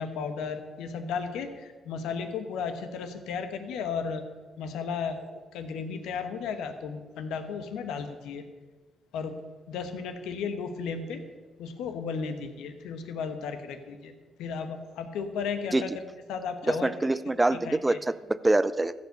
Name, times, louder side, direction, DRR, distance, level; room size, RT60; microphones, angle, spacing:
voice 1, 0.0-4.2 4.6-8.4 9.1-9.4 9.7-11.2 11.6-14.1 14.4-15.9 16.3-16.9 17.5-18.0, left 5 dB, 90° left, 8 dB, 1.1 m, -34 dB
voice 2, 16.7-18.9, right 2 dB, 15° right, 16 dB, 0.5 m, -25 dB
15.0 x 5.5 x 6.7 m, 1.4 s
cardioid pair, 90°, 0 cm